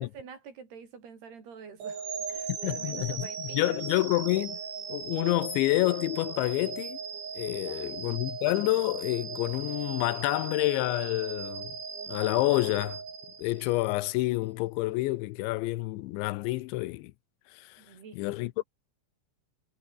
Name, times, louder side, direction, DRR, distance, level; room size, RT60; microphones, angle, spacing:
voice 1, 0.0-4.0 7.6-7.9 17.8-18.2, right 6 dB, 60° right, 6.4 m, -48 dB
sound 1, 1.8-13.9, right 6 dB, 85° right, 8.5 m, -38 dB
voice 2, 2.5-4.6 4.9-7.0 7.4-11.7 12.1-13.0 13.4-17.1 17.5-17.8 18.1-18.5, left 19 dB, 85° left, 3.1 m, -28 dB
omnidirectional pair, 5.2 m